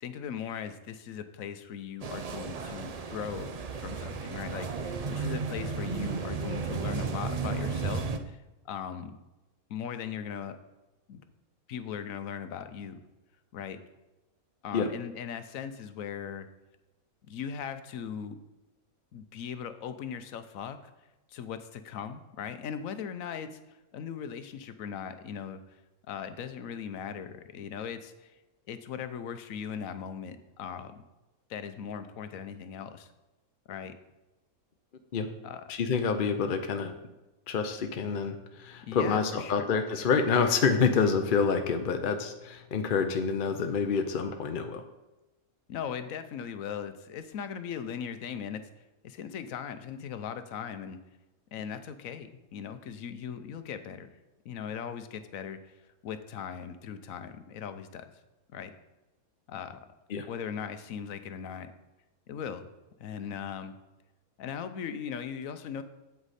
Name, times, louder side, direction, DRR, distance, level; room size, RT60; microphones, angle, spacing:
voice 1, 0.0-9.2 9.7-10.6 11.1-11.2 11.7-13.0 13.5-13.8 14.6-16.5 17.3-18.4 19.1-20.9 21.3-25.6 26.1-28.4 28.7-31.0 31.5-33.1 33.7-33.9 35.4-35.7 38.9-39.6 45.7-48.6 49.0-51.0 51.5-54.1 54.4-55.7 56.0-58.1 58.5-58.7 59.5-59.8 60.3-61.7 62.3-62.7 63.0-63.8 64.4-65.8, left 7 dB, 70° left, 10 dB, 1.1 m, -39 dB
sound 1, 2.0-8.2, right 5 dB, 65° right, 0.3 m, -34 dB
voice 2, 35.7-36.9 37.5-44.8 60.1-60.3, left 5 dB, 50° left, 6 dB, 0.6 m, -27 dB
8.2 x 8.0 x 4.2 m, 1.1 s
omnidirectional pair, 1.5 m